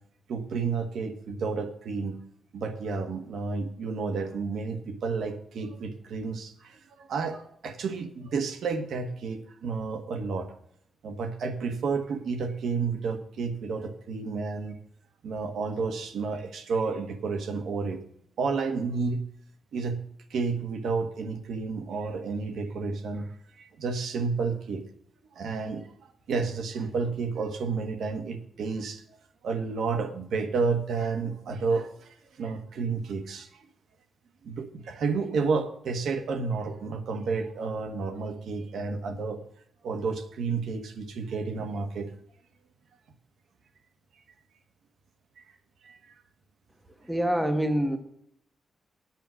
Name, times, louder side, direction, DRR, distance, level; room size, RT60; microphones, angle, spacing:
voice 1, 0.3-2.2 2.5-10.5 11.0-14.8 15.2-18.0 18.4-19.2 19.7-20.0 20.3-24.8 25.3-29.0 29.4-33.7 34.4-39.4 39.8-42.1 45.4-45.5 45.8-46.0, right 4 dB, 80° right, 8 dB, 1.3 m, -31 dB
voice 2, 47.1-48.0, equal, 5° right, 6 dB, 1.2 m, -25 dB
9.1 x 8.9 x 6.2 m, 0.70 s
wide cardioid pair, 165°, 0 cm